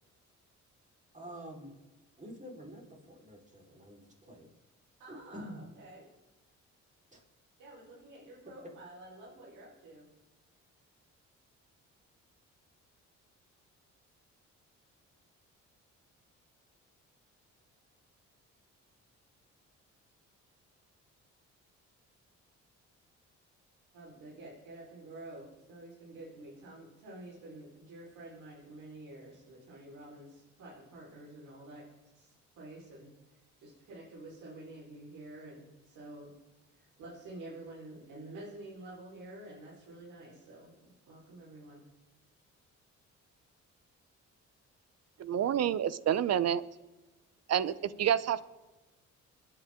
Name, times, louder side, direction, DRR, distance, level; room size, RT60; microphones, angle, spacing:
voice 1, 1.1-1.7 2.2-4.5 5.1-5.6 7.1-7.2, equal, 25° right, 0 dB, 4.5 m, -47 dB
voice 2, 5.0-6.1 7.6-10.1 23.9-31.9 32.1-36.3 36.7-41.9 47.8-48.1, right 2 dB, 85° right, -6 dB, 4.6 m, -49 dB
voice 3, 45.2-46.6 47.5-48.4, right 9 dB, 55° right, 17 dB, 0.8 m, -28 dB
26.5 x 9.8 x 3.8 m, 1.1 s
cardioid pair, 90°, 30 cm